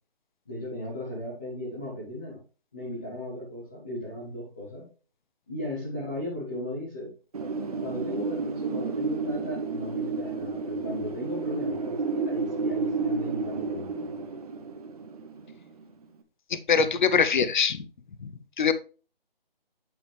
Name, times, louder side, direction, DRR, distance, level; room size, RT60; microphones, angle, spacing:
voice 1, 0.5-2.4 2.7-4.9 5.5-7.1 7.8-14.1, left 1 dB, 10° left, 0.6 m, -36 dB
Wind, 7.3-16.0, right 4 dB, 40° right, 0.9 m, -31 dB
voice 2, 16.5-17.8 18.2-18.3 18.6-18.7, left 6 dB, 50° left, 0.7 m, -23 dB
9.0 x 5.1 x 3.2 m
hypercardioid pair, 165°, 30 cm